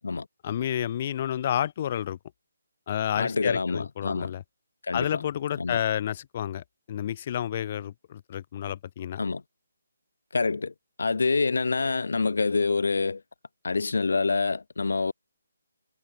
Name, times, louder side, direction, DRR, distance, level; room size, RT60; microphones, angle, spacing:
voice 1, 0.4-2.2 2.9-4.4 4.9-9.2, left 10 dB, 30° left, 5.3 m, -30 dB
voice 2, 3.2-4.3 4.8-5.2 5.6-5.8 9.2-9.4 10.3-13.2 13.6-15.1, left 4 dB, 75° left, 6.5 m, -26 dB
hypercardioid pair, 170°, 0 cm